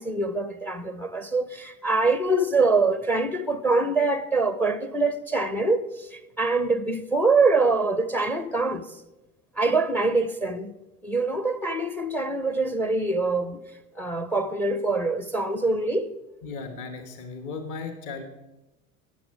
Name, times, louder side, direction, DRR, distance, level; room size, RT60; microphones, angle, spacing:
voice 1, 0.0-9.0 9.6-10.7 11.0-13.6 14.0-16.1, right 3 dB, 5° left, 0.5 m, -24 dB
voice 2, 16.4-18.2, left 4 dB, 45° left, 1.5 m, -36 dB
13.0 x 8.9 x 5.0 m
figure-of-eight pair, 75°, 44 cm